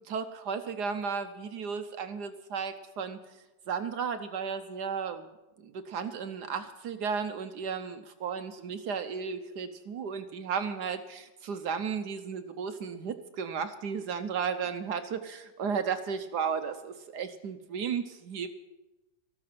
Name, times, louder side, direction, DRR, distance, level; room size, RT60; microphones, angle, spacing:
voice 1, 0.0-3.2 3.7-5.2 5.6-18.5, right 6 dB, 65° right, 9 dB, 1.0 m, -34 dB
13.5 x 12.5 x 5.8 m, 1.0 s
omnidirectional pair, 2.4 m